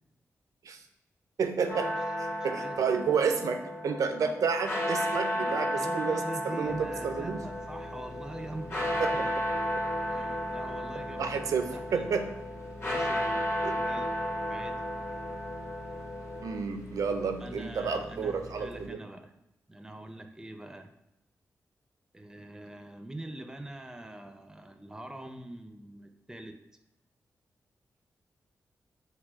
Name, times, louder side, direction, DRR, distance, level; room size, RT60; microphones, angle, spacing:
voice 1, 1.4-1.9 2.2-7.5 9.0-9.1 11.2-12.3 13.6-13.7 16.4-19.0, right 5 dB, 75° right, 7 dB, 0.5 m, -30 dB
sound 1, 1.7-16.6, equal, 40° left, 1.1 m, -33 dB
voice 2, 2.3-2.8 5.8-9.3 10.1-12.1 12.8-14.1 14.5-14.8 17.2-19.3 19.7-20.9 22.1-26.6, right 1 dB, 10° right, 7 dB, 0.5 m, -44 dB
sound 2, 6.6-18.9, left 1 dB, 65° left, 1.0 m, -46 dB
4.5 x 2.2 x 4.4 m, 0.89 s
cardioid pair, 60°, 6 cm